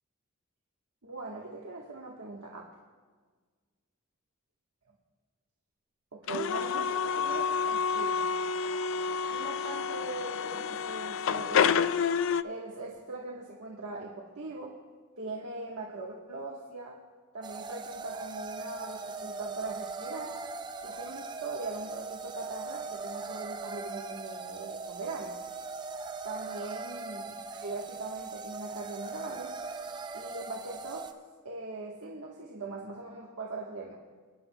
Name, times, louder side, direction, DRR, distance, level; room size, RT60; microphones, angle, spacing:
voice 1, 1.0-2.7 6.1-8.3 9.3-11.9 12.4-14.7 15.2-17.0 17.3-20.4 20.8-25.4 26.2-29.5 30.1-31.1 31.4-34.0, right 3 dB, 85° right, -3 dB, 1.3 m, -40 dB
sound 1, 6.3-12.4, left 6 dB, 60° left, 0.3 m, -29 dB
sound 2, 17.4-31.1, right 4 dB, 20° right, 0.4 m, -40 dB
26.0 x 10.0 x 2.2 m, 1.5 s
head